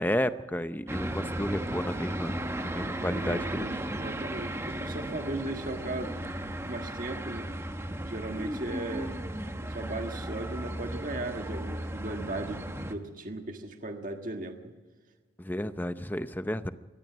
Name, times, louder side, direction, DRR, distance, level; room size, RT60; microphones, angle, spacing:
voice 1, 0.0-4.0 15.4-16.7, left 1 dB, 10° left, 11 dB, 0.6 m, -32 dB
sound 1, 0.9-12.9, right 1 dB, 15° right, 1.0 m, -35 dB
voice 2, 2.9-6.1 6.6-7.5 8.0-9.2 9.6-14.7, right 2 dB, 45° right, 4 dB, 1.6 m, -37 dB
23.0 x 19.0 x 6.1 m, 1.4 s
head